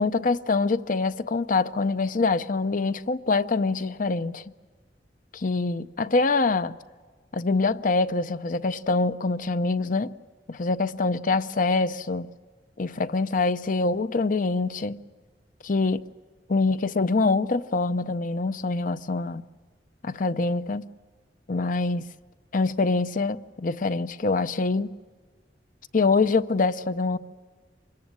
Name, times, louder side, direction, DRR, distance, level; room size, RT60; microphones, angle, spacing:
voice 1, 0.0-4.4 5.3-6.7 7.3-10.1 10.5-12.3 12.8-15.0 15.6-16.0 16.5-19.4 20.0-20.9 21.5-22.1 22.5-24.9 25.9-27.2, left 3 dB, 50° left, 0.7 m, -25 dB
25.0 x 21.0 x 7.6 m
head